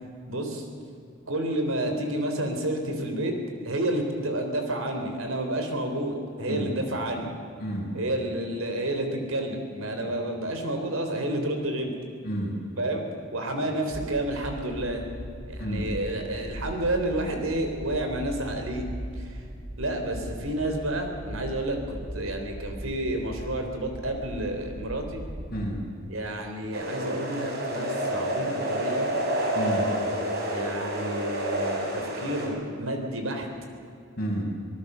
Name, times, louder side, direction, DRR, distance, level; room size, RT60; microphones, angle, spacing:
voice 1, 0.3-0.7 1.3-3.4 3.6-7.3 7.9-11.9 12.8-13.0 13.3-15.0 15.5-18.9 19.2-19.4 19.8-25.2 26.1-29.1 30.5-33.5, right 1 dB, 70° right, 4 dB, 3.7 m, -30 dB
voice 2, 12.2-12.5 15.6-15.9 25.5-25.8 29.5-29.9 34.2-34.5, right 1 dB, 45° left, -2 dB, 6.1 m, -30 dB
sound 1, 13.9-25.8, equal, 15° right, 2.2 m, -39 dB
sound 2, 26.7-32.5, right 1 dB, 45° right, 4.4 m, -29 dB
25.0 x 18.5 x 6.8 m, 2.5 s
head